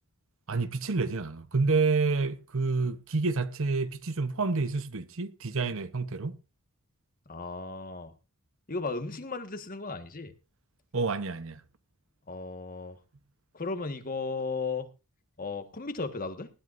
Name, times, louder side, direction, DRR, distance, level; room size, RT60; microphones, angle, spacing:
voice 1, 0.5-6.4 10.9-11.6, right 3 dB, 65° right, 0.9 m, -28 dB
voice 2, 7.3-8.1 8.7-10.3 12.3-13.0 13.5-14.9 15.4-16.5, left 3 dB, 40° left, 1.5 m, -35 dB
19.5 x 12.5 x 2.6 m
head